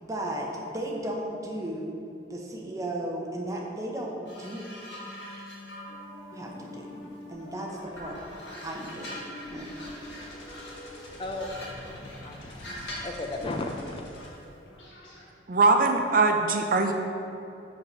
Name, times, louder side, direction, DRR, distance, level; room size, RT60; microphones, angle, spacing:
voice 1, 0.0-2.0 2.3-4.7 6.3-6.9 7.3-8.2 8.6-9.2 9.5-9.7, right 1 dB, 20° right, -1 dB, 0.8 m, -35 dB
sound 1, 4.3-7.5 7.9-13.2 14.2-14.4, equal, 65° left, 1.6 m, -44 dB
sound 2, 5.9-15.2, left 1 dB, 80° left, 1.5 m, -45 dB
voice 2, 11.2-14.0, left 2 dB, 25° left, 3 dB, 0.4 m, -36 dB
voice 3, 15.5-16.9, right 3 dB, 45° right, 4 dB, 0.4 m, -21 dB
6.3 x 4.7 x 5.4 m, 2.8 s
head